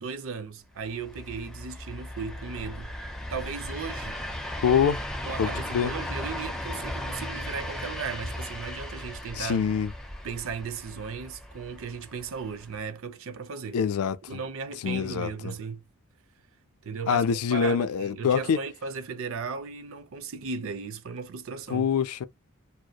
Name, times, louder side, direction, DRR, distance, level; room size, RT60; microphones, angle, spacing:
voice 1, 0.0-4.2 5.2-9.6 10.2-13.8 14.3-15.8 16.8-17.2 17.5-21.9, right 5 dB, 65° right, 0.5 m, -36 dB
sound 1, 0.8-12.8, left 1 dB, 5° left, 0.4 m, -37 dB
voice 2, 4.6-5.0 5.4-5.9 9.4-9.9 13.7-14.4 14.8-15.5 17.1-18.6 21.7-22.3, left 7 dB, 80° left, 0.4 m, -25 dB
2.7 x 2.0 x 2.2 m
head